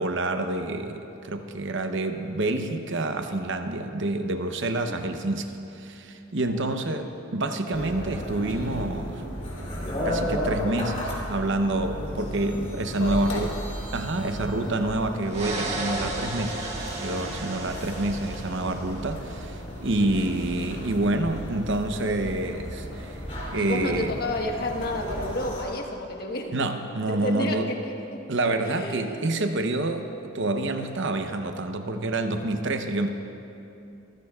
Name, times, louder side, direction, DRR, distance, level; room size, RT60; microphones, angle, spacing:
voice 1, 0.0-9.2 10.0-13.5 13.9-16.7 17.0-23.2 23.5-24.1 26.5-27.7 28.3-33.1, right 2 dB, 60° right, 6 dB, 0.8 m, -28 dB
sound 1, 7.7-25.6, equal, 35° left, 3.1 m, -34 dB
voice 2, 13.0-13.5 20.0-20.4 23.5-26.5 27.1-28.2 28.6-29.5, left 1 dB, 50° left, 2 dB, 1.3 m, -31 dB
sound 2, 15.3-19.2, right 2 dB, 30° right, 1.7 m, -34 dB
25.0 x 15.0 x 2.4 m, 2.8 s
head